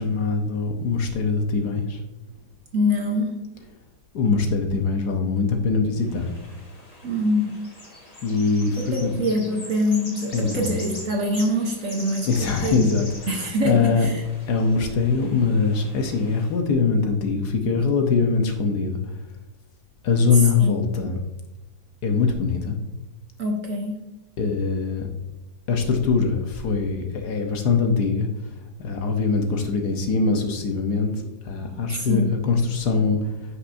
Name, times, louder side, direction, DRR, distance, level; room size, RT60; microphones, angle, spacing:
voice 1, 0.0-2.0 4.1-6.3 8.2-9.1 10.3-10.7 12.3-14.1 14.5-19.0 20.0-21.2 22.0-22.8 24.4-25.1 25.7-28.3 28.8-31.1 31.4-33.3, left 4 dB, 65° left, 4 dB, 1.3 m, -22 dB
voice 2, 2.7-3.4 7.0-7.6 8.8-12.9 13.3-14.2 20.3-20.9 23.4-24.1 31.9-32.4, equal, 55° right, 2 dB, 1.1 m, -25 dB
sound 1, 6.0-16.5, left 1 dB, 20° left, 1.4 m, -42 dB
9.7 x 5.8 x 2.6 m, 1.0 s
omnidirectional pair, 2.0 m